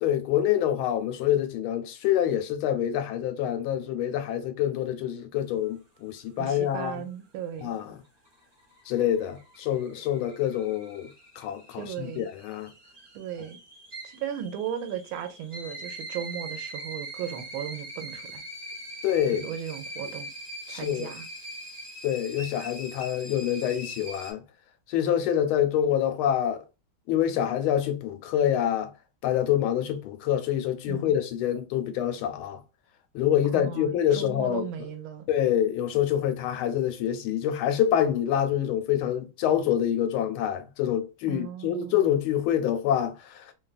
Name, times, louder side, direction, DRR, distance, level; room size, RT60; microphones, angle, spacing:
voice 1, 0.0-7.0 7.6-7.8 8.9-11.1 11.4-12.7 19.0-19.5 20.7-21.1 22.0-24.4 24.9-26.6 27.1-28.9 29.2-32.6 33.1-34.6 35.3-43.5, left 10 dB, 80° left, 1.4 m, -26 dB
voice 2, 6.4-7.7 11.8-12.3 13.1-13.6 14.0-18.4 19.3-20.3 20.7-21.3 30.9-31.1 33.5-35.2 41.3-42.1, right 9 dB, 80° right, 1.4 m, -36 dB
sound 1, 8.0-24.3, right 1 dB, 20° right, 0.6 m, -42 dB
3.3 x 2.2 x 2.3 m
omnidirectional pair, 2.3 m